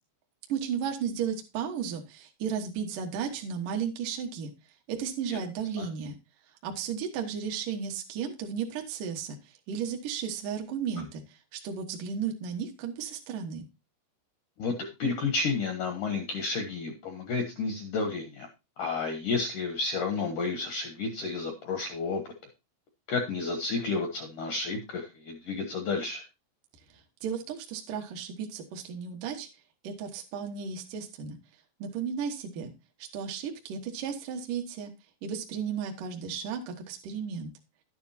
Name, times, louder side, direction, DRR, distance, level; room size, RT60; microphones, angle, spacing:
voice 1, 0.5-4.5 4.9-6.1 6.6-9.4 9.7-13.7 27.2-29.5 29.8-31.4 31.8-32.7 33.1-34.9 35.2-37.5, right 7 dB, 65° right, 3 dB, 2.3 m, -34 dB
voice 2, 14.6-18.5 18.8-22.2 23.1-26.2, left 4 dB, 75° left, 5 dB, 1.9 m, -31 dB
11.5 x 9.5 x 2.7 m, 0.25 s
omnidirectional pair, 5.3 m